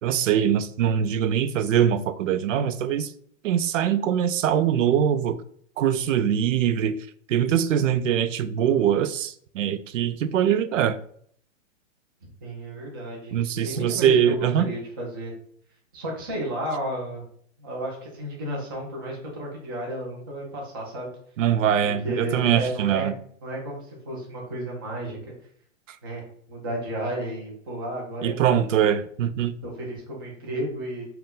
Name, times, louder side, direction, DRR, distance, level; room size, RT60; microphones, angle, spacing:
voice 1, 0.0-3.1 3.4-5.4 5.8-7.0 7.3-11.0 13.3-14.7 21.4-23.1 25.9-26.0 28.2-29.5, right 9 dB, 90° right, 0.5 m, -22 dB
voice 2, 12.2-13.4 13.6-15.3 15.9-17.2 17.6-21.1 22.0-23.1 23.4-25.2 26.0-28.3 29.6-31.1, right 1 dB, 20° right, 0.4 m, -33 dB
4.3 x 2.2 x 3.7 m
hypercardioid pair, 170°, 37 cm